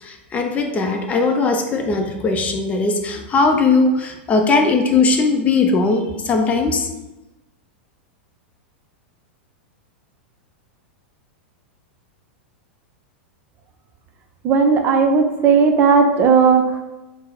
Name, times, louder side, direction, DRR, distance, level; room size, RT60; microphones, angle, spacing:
voice 1, 0.0-6.9, left 3 dB, 25° left, 3 dB, 0.5 m, -19 dB
voice 2, 14.4-16.8, right 5 dB, 30° right, 4 dB, 0.4 m, -15 dB
3.9 x 2.0 x 3.9 m, 1.0 s
hypercardioid pair, 95°, 6 cm